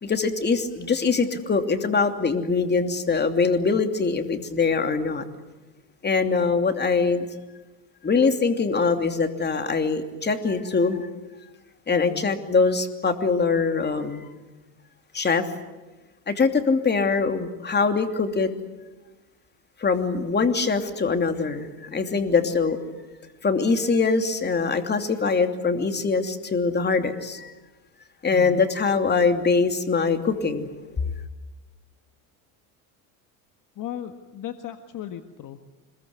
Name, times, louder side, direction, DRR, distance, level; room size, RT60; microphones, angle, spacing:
voice 1, 0.0-5.2 6.0-7.3 8.0-11.1 11.9-14.3 15.1-15.5 16.3-18.5 19.8-22.8 23.4-27.5 28.2-31.0, left 4 dB, 20° left, 6 dB, 2.9 m, -23 dB
voice 2, 11.9-12.3 28.3-28.7 33.8-35.6, left 11 dB, 40° left, 7 dB, 1.7 m, -36 dB
26.0 x 22.0 x 9.6 m, 1.1 s
supercardioid pair, 100°, 46 cm